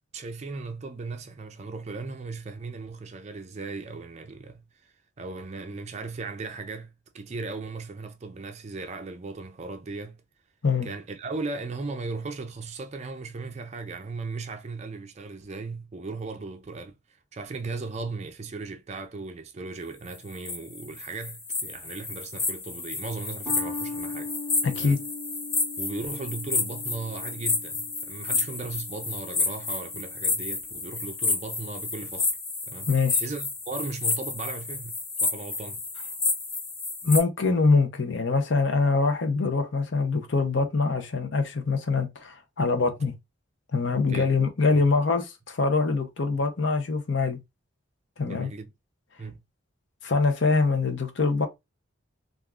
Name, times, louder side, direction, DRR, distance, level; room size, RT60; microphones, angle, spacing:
voice 1, 0.1-10.2 10.8-17.0 17.3-24.3 24.8-25.0 25.8-32.3 32.7-32.9 33.2-35.8 43.9-44.3 44.7-44.8 48.2-48.7 49.2-49.4, right 3 dB, 35° right, 0.4 m, -37 dB
sound 1, 20.1-37.2, left 3 dB, 25° left, 0.8 m, -30 dB
sound 2, 23.5-30.2, left 3 dB, 5° right, 0.8 m, -40 dB
voice 2, 24.6-25.0 32.9-33.2 37.0-43.1 43.7-47.4 48.2-48.5 50.0-51.5, left 4 dB, 60° left, 0.6 m, -24 dB
3.4 x 2.4 x 2.3 m
head